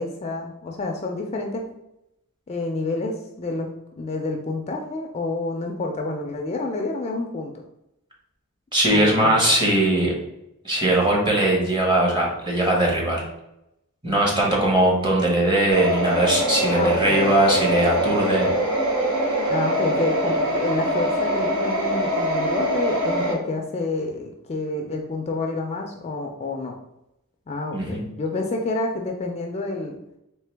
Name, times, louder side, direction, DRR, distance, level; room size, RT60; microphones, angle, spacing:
voice 1, 0.0-1.7 2.5-3.7 4.0-7.5 8.9-9.4 16.7-17.4 19.5-26.7 27.5-30.0, left 2 dB, 30° left, 2 dB, 0.4 m, -28 dB
voice 2, 8.7-10.1 10.6-13.2 14.0-18.5 27.7-28.0, right 1 dB, 20° right, -3 dB, 1.1 m, -20 dB
sound 1, 15.7-23.3, right 1 dB, 85° right, 1.0 m, -23 dB
3.7 x 3.1 x 3.3 m, 0.85 s
head